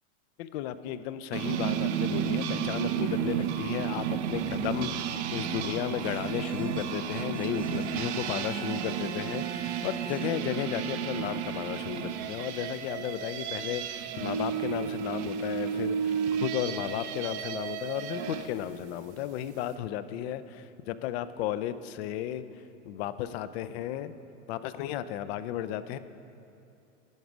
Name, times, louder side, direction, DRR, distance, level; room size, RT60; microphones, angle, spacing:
voice 1, 0.4-22.4 22.9-24.2 24.5-26.0, left 11 dB, 55° left, 13 dB, 0.5 m, -34 dB
sound 1, 1.3-18.5, right 8 dB, 60° right, 0.7 m, -32 dB
Bowed string instrument, 6.0-10.6, right 8 dB, 25° right, 0.4 m, -45 dB
10.5 x 4.9 x 6.0 m, 2.6 s
hypercardioid pair, 110°, 38 cm